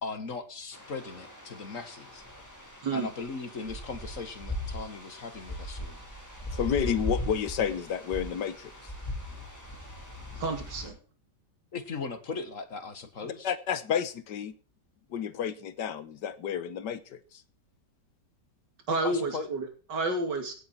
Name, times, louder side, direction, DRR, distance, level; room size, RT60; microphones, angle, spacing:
voice 1, 0.0-2.2 2.9-6.0 11.7-13.5 19.0-19.5, left 4 dB, 50° left, 1.7 m, -38 dB
sound 1, 0.7-10.9, equal, 10° left, 4.3 m, -39 dB
voice 2, 6.5-8.7 13.2-14.5 15.1-17.4, left 8 dB, 75° left, 1.6 m, -31 dB
voice 3, 10.3-10.9 18.9-20.5, right 2 dB, 75° right, 3.1 m, -30 dB
16.5 x 8.7 x 4.4 m
omnidirectional pair, 1.9 m